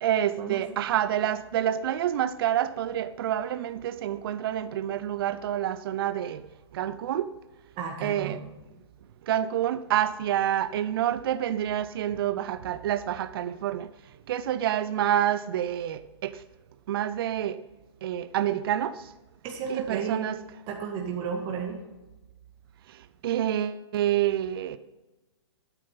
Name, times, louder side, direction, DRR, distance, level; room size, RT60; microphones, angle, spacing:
voice 1, 0.0-6.5 6.7-7.3 8.0-8.4 9.3-13.9 14.3-16.4 16.9-17.6 18.0-19.0 19.7-20.4 23.2-24.8, right 11 dB, 55° right, 0.6 m, -28 dB
voice 2, 7.8-8.4 19.4-20.3 20.7-21.8, right 6 dB, 30° right, 1.9 m, -33 dB
11.0 x 9.2 x 5.6 m
hypercardioid pair, 130°, 15 cm